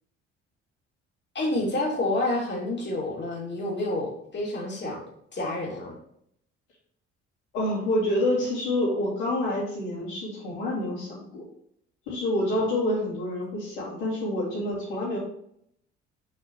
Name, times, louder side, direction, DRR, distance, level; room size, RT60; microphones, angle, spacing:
voice 1, 1.3-5.0 5.3-5.9 12.6-13.0, left 2 dB, 30° left, -4 dB, 2.9 m, -29 dB
voice 2, 7.5-11.4 12.1-15.2, left 1 dB, 70° left, -9 dB, 3.2 m, -27 dB
8.6 x 6.2 x 3.2 m, 0.70 s
figure-of-eight pair, 50°, 35 cm